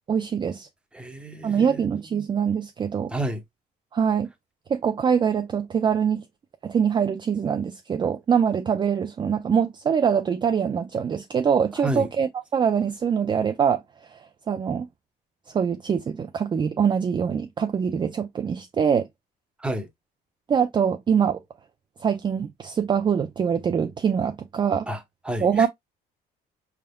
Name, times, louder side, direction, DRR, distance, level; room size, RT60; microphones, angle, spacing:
voice 1, 0.1-0.7 1.4-3.1 3.9-4.3 4.7-6.2 6.6-13.8 14.1-14.2 14.5-14.9 15.5-19.1 20.5-21.4 22.0-24.9 25.4-25.7, right 7 dB, 30° right, 0.4 m, -23 dB
voice 2, 0.9-1.8 3.1-3.4 11.8-12.1 19.6-19.9 24.9-25.7, right 1 dB, 5° right, 0.9 m, -30 dB
4.8 x 3.5 x 2.2 m
cardioid pair, 110°, 17 cm